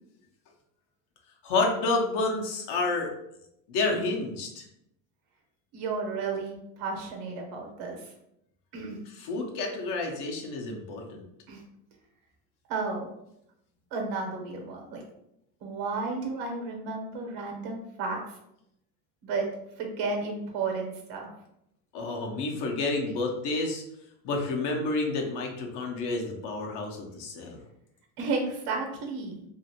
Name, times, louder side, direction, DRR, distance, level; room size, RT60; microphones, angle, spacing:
voice 1, 1.4-3.1 3.7-4.6 9.2-11.2 21.9-23.8 24.2-27.6, left 3 dB, 55° left, 1 dB, 0.8 m, -29 dB
voice 2, 5.7-8.1 8.7-9.0 11.5-11.6 12.7-13.1 13.9-15.0 15.6-18.4 19.2-19.5 19.8-21.3 28.2-29.4, right 4 dB, 75° right, 2 dB, 1.1 m, -33 dB
2.7 x 2.5 x 2.8 m, 0.79 s
supercardioid pair, 110°, 47 cm